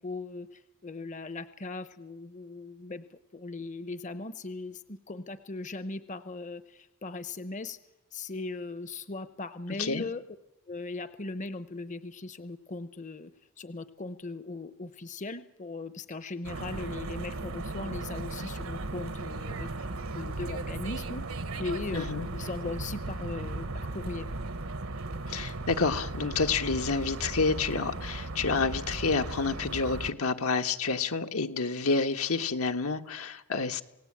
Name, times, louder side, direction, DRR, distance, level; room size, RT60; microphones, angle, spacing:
voice 1, 0.0-7.8 8.1-10.2 10.7-13.3 13.6-21.3 21.6-22.0 22.3-24.3, left 3 dB, 35° left, 13 dB, 0.8 m, -38 dB
sound 1, 16.4-30.1, right 2 dB, 70° right, 1.2 m, -36 dB
voice 2, 21.9-22.3 25.3-33.8, left 4 dB, 80° left, 6 dB, 1.5 m, -29 dB
27.5 x 18.5 x 8.8 m, 0.95 s
head